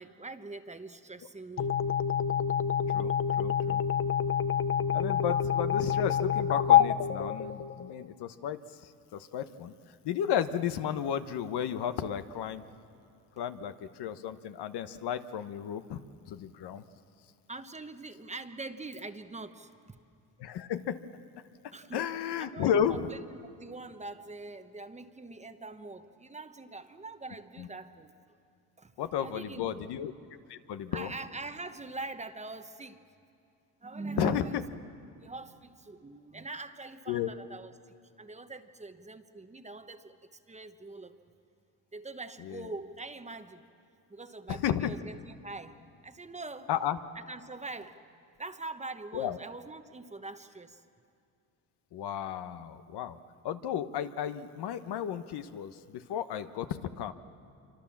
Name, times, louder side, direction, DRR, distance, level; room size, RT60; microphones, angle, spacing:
voice 1, 0.0-1.7 17.5-20.0 21.7-22.1 22.4-23.2 23.6-28.1 28.8-28.9 29.2-29.9 30.9-33.0 33.8-34.6 35.2-37.7 38.2-41.1 41.9-43.6 44.1-45.8 46.0-46.7 47.3-47.9 48.4-50.8, right 3 dB, 15° right, 8 dB, 1.0 m, -43 dB
sound 1, 1.6-8.1, left 9 dB, 30° left, 0.6 m, -27 dB
voice 2, 2.9-3.8 4.9-9.7 10.0-12.6 13.4-16.0 16.3-16.8 20.4-21.0 21.9-23.1 27.6-27.7 29.0-30.1 30.5-31.1 34.2-34.6 37.1-37.3 42.4-42.7 44.5-45.0 46.7-47.0 49.1-49.4 51.9-53.2 53.4-57.1, left 9 dB, 65° left, 10 dB, 1.2 m, -33 dB
27.0 x 25.0 x 7.3 m, 2.5 s
cardioid pair, 115°, 42 cm